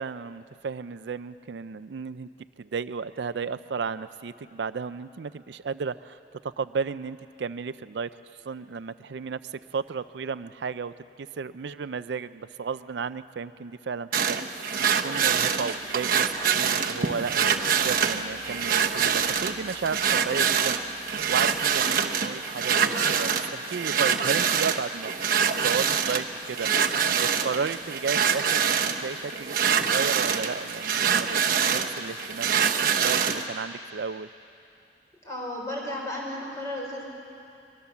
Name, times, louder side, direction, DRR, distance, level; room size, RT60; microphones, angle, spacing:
voice 1, 0.0-2.3 2.6-6.2 6.6-8.1 8.5-14.4 14.8-16.3 16.5-25.1 25.5-26.7 27.1-34.3, right 5 dB, 70° right, 13 dB, 0.4 m, -33 dB
sound 1, 14.1-33.5, right 7 dB, 50° right, 1.0 m, -25 dB
voice 2, 35.2-37.0, left 1 dB, 15° left, -2 dB, 4.9 m, -33 dB
23.0 x 22.0 x 7.1 m, 2.6 s
head